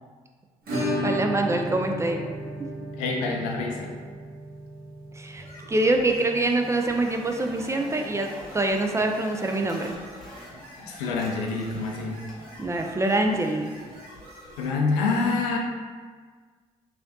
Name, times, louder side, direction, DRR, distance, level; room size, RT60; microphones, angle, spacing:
Acoustic guitar / Strum, 0.7-9.3 9.5-9.6 9.9-10.0 10.4-10.5 12.5-12.6 13.7-13.8, equal, 55° right, 0.9 m, -34 dB
voice 1, 1.0-2.2 5.1-8.3 8.5-9.9 12.6-13.7, right 2 dB, 15° right, 3 dB, 0.3 m, -25 dB
voice 2, 3.0-4.0 10.8-12.2 14.6-15.6, left 4 dB, 80° left, 1 dB, 0.4 m, -27 dB
sound 1, 5.4-14.6, equal, 90° right, 1.1 m, -46 dB
sound 2, 5.8-10.8 11.0-12.6, left 1 dB, ahead, 1.0 m, -47 dB
3.2 x 2.7 x 2.6 m, 1.5 s
hypercardioid pair, 45°, 18 cm